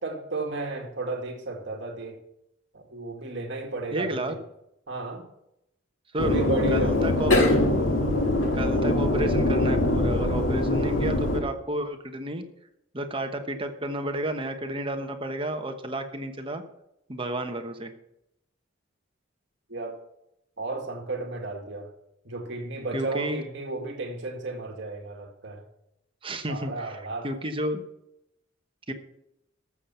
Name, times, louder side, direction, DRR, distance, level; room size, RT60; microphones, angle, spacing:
voice 1, 0.0-2.2 2.7-4.4 4.9-5.2 6.2-7.3 19.7-20.0 20.6-21.9 22.2-25.6 26.5-27.3, right 3 dB, 60° right, 2 dB, 2.0 m, -33 dB
voice 2, 3.9-4.3 6.1-7.5 8.5-12.4 12.9-16.6 17.1-17.9 22.9-23.4 26.2-27.0 27.2-27.8 28.9-29.0, right 1 dB, 25° right, 6 dB, 1.1 m, -31 dB
sound 1, 6.2-11.4, left 1 dB, 70° left, 2.1 m, -23 dB
13.5 x 7.1 x 5.6 m, 0.81 s
head